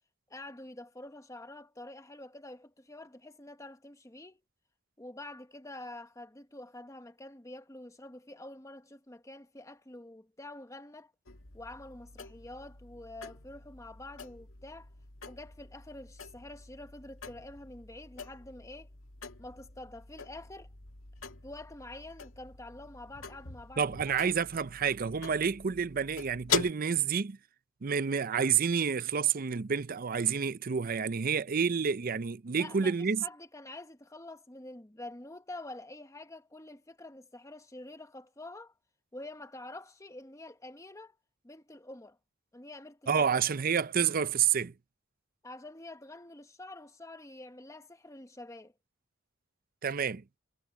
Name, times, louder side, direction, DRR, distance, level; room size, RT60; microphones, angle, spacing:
voice 1, 0.3-4.4 5.0-11.1 11.5-14.9 15.3-18.9 19.4-20.7 21.4-24.2 32.5-32.9 33.2-38.7 39.1-41.1 41.4-42.2 42.5-43.3 45.4-48.7, left 2 dB, 15° left, 1.0 m, -47 dB
sound 1, 11.3-26.7, left 6 dB, 80° left, 2.0 m, -42 dB
voice 2, 23.8-27.4 27.8-33.2 43.1-44.7 49.8-50.2, right 6 dB, 45° right, 0.5 m, -29 dB
head